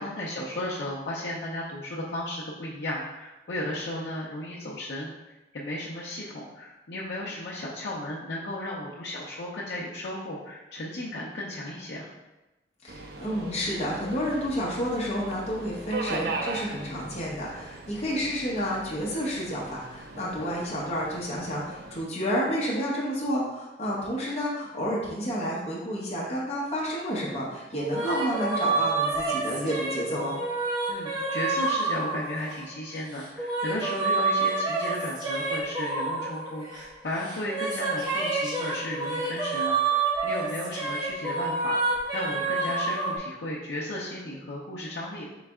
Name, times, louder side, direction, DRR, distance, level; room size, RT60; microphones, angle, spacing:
voice 1, 0.0-12.1 20.4-20.6 28.1-28.2 30.9-45.2, left 1 dB, 70° left, -6 dB, 0.6 m, -35 dB
voice 2, 12.8-30.4, equal, 40° left, -5 dB, 0.9 m, -30 dB
Subway metro underground, 12.9-22.0, right 3 dB, 60° right, 0.4 m, -39 dB
sound 1, 27.7-32.7 33.2-36.9 37.2-43.2, right 3 dB, 25° right, 0.7 m, -28 dB
3.9 x 3.3 x 3.5 m, 1.0 s
head